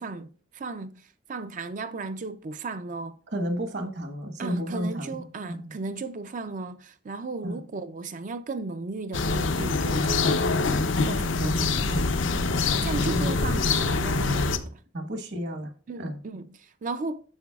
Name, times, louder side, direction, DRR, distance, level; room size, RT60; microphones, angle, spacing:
voice 1, 0.0-3.2 4.4-10.8 11.1-12.2 12.8-14.8 15.9-17.2, right 3 dB, 40° right, 0.4 m, -35 dB
voice 2, 3.3-5.7 7.4-7.6 11.8-12.1 13.1-13.5 14.9-15.7 16.0-16.2, equal, 60° right, 1.3 m, -32 dB
sound 1, 9.1-14.6, left 3 dB, 70° left, 0.6 m, -25 dB
8.7 x 6.7 x 2.3 m
head